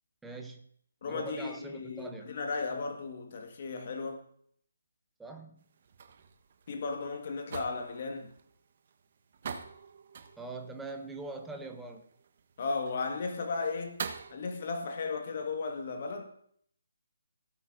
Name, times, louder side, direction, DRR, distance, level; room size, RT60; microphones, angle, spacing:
voice 1, 0.2-0.6 1.1-2.3 5.2-5.7 10.4-12.0, right 3 dB, 5° right, 1.1 m, -42 dB
voice 2, 1.0-4.2 6.7-8.3 12.6-14.0 14.3-16.3, left 4 dB, 45° left, 1.6 m, -35 dB
sound 1, 5.6-14.3, right 6 dB, 45° right, 1.1 m, -46 dB
17.5 x 8.3 x 2.6 m
figure-of-eight pair, 145°, 0 cm